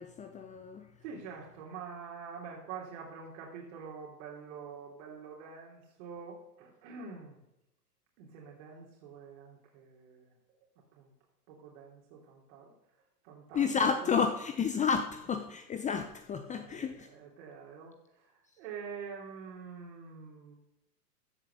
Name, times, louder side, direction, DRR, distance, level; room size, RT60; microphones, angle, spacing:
voice 1, 0.0-0.8 13.5-17.1, left 6 dB, 15° left, 7 dB, 0.9 m, -31 dB
voice 2, 1.0-7.4 8.2-10.6 10.9-11.1 11.5-12.7 13.2-14.1 16.5-20.5, right 6 dB, 45° right, -2 dB, 3.5 m, -46 dB
15.0 x 8.3 x 6.8 m, 0.85 s
figure-of-eight pair, 100°, 48 cm